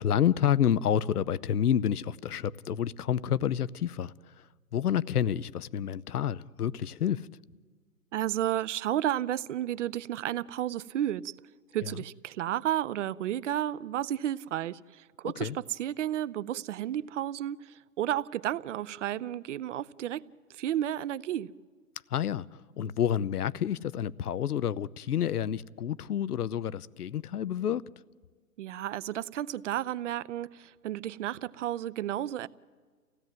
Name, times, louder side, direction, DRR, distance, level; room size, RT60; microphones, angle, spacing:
voice 1, 0.0-4.5 4.7-7.3 11.8-11.9 15.2-15.6 22.1-27.8, left 9 dB, 80° left, 0.8 m, -29 dB
voice 2, 8.1-11.3 11.7-20.2 20.5-21.5 28.6-32.5, right 12 dB, 50° right, 0.8 m, -32 dB
28.5 x 16.5 x 9.3 m
hypercardioid pair, 130°, 45 cm